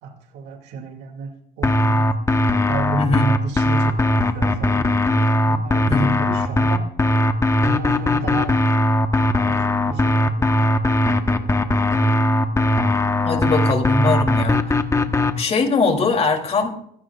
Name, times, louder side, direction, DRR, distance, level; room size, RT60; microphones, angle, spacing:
voice 1, 0.0-2.1 2.7-4.9 5.5-6.8 7.6-8.6 9.5-10.7 11.3-11.8, right 3 dB, 85° right, 4 dB, 2.7 m, -32 dB
sound 1, 1.6-15.3, left 1 dB, 15° left, 1.3 m, -19 dB
voice 2, 3.0-3.3 5.9-6.2 13.2-14.6 15.4-16.7, left 4 dB, 40° left, 3 dB, 3.2 m, -21 dB
24.5 x 16.5 x 2.5 m, 0.69 s
cardioid pair, 110°, 17 cm